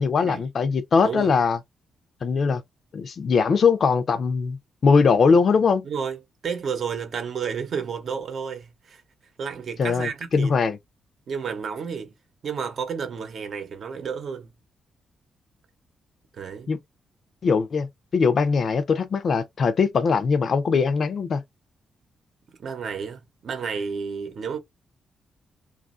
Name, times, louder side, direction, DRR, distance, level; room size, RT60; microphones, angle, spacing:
voice 1, 0.0-1.6 2.2-2.6 2.9-4.6 4.8-5.9 9.8-10.8 16.7-16.8 17.4-17.9 18.1-21.4, left 5 dB, 55° left, 0.5 m, -21 dB
voice 2, 1.0-1.3 5.8-9.0 9.4-10.6 11.3-12.1 12.4-14.5 16.3-16.7 22.6-24.6, right 6 dB, 60° right, 0.8 m, -31 dB
3.0 x 2.4 x 2.4 m
cardioid pair, 90°, 0 cm